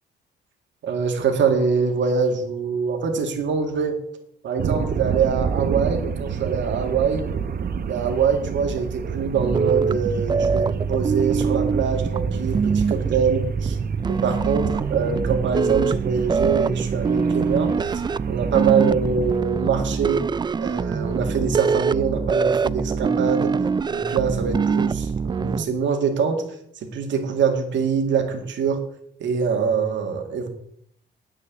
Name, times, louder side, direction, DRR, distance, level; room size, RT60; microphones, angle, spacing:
voice 1, 0.8-4.0 4.4-7.3 7.8-13.8 14.0-18.0 18.3-20.3 20.6-23.5 23.9-26.4 26.7-28.8 29.2-30.5, right 6 dB, 70° right, 3 dB, 2.2 m, -24 dB
sound 1, 4.6-19.4, right 6 dB, 50° right, 0.9 m, -30 dB
sound 2, 9.3-25.6, right 5 dB, 20° right, 0.3 m, -24 dB
9.0 x 6.5 x 8.6 m, 0.70 s
cardioid pair, 90°, 20 cm